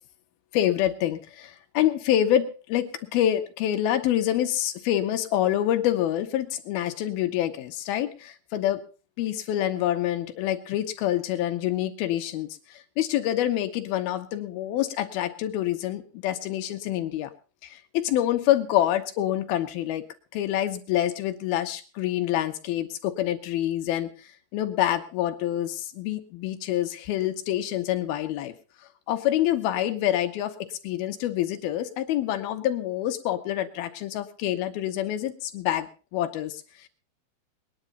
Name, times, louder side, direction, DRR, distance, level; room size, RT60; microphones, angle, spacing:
voice 1, 0.5-8.8 9.2-12.5 13.0-17.3 17.6-20.0 20.3-24.1 24.5-28.5 29.1-36.6, left 12 dB, 90° left, 7 dB, 3.0 m, -26 dB
21.0 x 10.5 x 4.0 m, 0.34 s
omnidirectional pair, 4.3 m